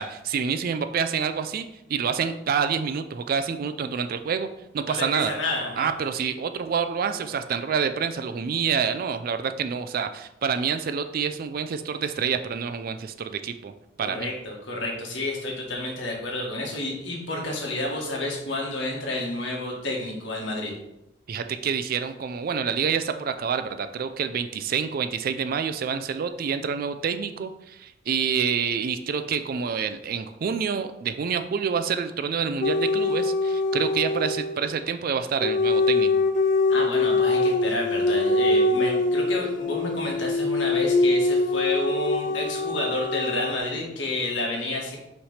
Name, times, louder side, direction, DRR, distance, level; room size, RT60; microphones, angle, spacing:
voice 1, 0.0-4.5 4.7-5.3 5.8-13.7 14.0-14.3 21.3-36.1, right 6 dB, 50° right, 9 dB, 0.3 m, -27 dB
voice 2, 4.8-5.9 14.0-20.7 36.7-45.0, left 2 dB, 70° left, -2 dB, 1.7 m, -30 dB
sound 1, 32.6-34.6 35.4-43.6, left 2 dB, 40° left, 0.4 m, -23 dB
5.7 x 3.3 x 5.6 m, 0.89 s
head